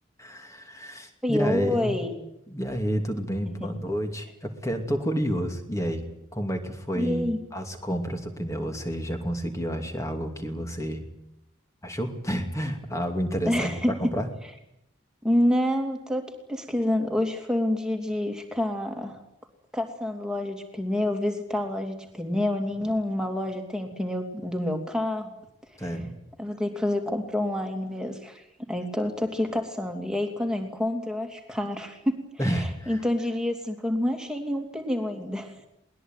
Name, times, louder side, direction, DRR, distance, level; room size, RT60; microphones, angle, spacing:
voice 1, 0.2-2.0 2.5-6.0 6.3-11.0 11.8-14.3 22.8-22.9 25.8-26.2 32.4-33.0, equal, 15° left, 5 dB, 2.7 m, -30 dB
voice 2, 1.2-2.2 3.6-3.7 6.9-7.4 13.4-14.1 15.2-19.2 19.7-25.3 25.7-25.9 26.4-35.7, left 1 dB, 5° right, 3 dB, 2.9 m, -28 dB
21.5 x 20.0 x 9.4 m, 0.83 s
head